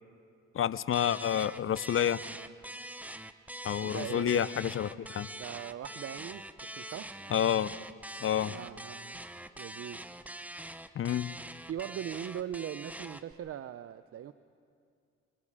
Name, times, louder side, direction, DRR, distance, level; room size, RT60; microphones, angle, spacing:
voice 1, 0.5-2.2 3.6-5.3 7.3-7.7 8.2-8.5 11.0-11.3, left 10 dB, 45° left, 18 dB, 0.5 m, -29 dB
sound 1, 0.9-13.3, right 1 dB, 5° right, 0.7 m, -44 dB
voice 2, 3.8-4.5 5.4-7.3 8.5-9.2 9.6-10.1 11.7-14.3, right 10 dB, 50° right, 13 dB, 0.6 m, -40 dB
26.0 x 24.0 x 4.9 m, 2.4 s
cardioid pair, 90°, 30 cm